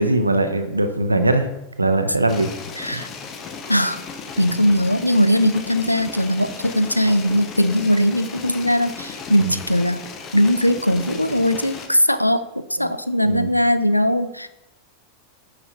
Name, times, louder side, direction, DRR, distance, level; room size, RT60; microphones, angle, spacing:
voice 1, 0.0-1.5 1.8-2.5 2.9-3.0 9.4-9.6 12.8-12.9 13.2-13.5, right 2 dB, 80° right, 8 dB, 0.6 m, -20 dB
sound 1, 2.3-11.9, left 5 dB, 30° left, 0.8 m, -36 dB
voice 2, 2.8-3.1 3.7-4.0 4.4-10.0 10.3-14.5, equal, 90° left, 12 dB, 0.4 m, -20 dB
9.0 x 5.7 x 2.7 m, 0.89 s
figure-of-eight pair, 90°, 0 cm